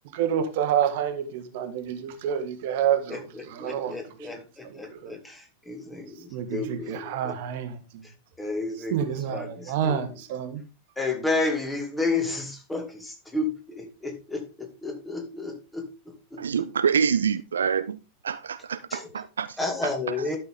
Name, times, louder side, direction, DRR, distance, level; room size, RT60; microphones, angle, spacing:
voice 1, 0.1-4.0 5.0-5.1 6.3-7.8 8.9-10.6, right 9 dB, 50° right, 9 dB, 1.4 m, -28 dB
voice 2, 3.1-7.3 8.4-10.0 11.0-15.8 16.3-16.4 18.9-19.0 19.6-20.4, left 3 dB, 10° left, 4 dB, 2.2 m, -31 dB
voice 3, 16.4-18.0 18.2-19.7, right 7 dB, 70° right, 14 dB, 0.4 m, -26 dB
12.0 x 6.2 x 3.7 m, 0.29 s
figure-of-eight pair, 90°, 0 cm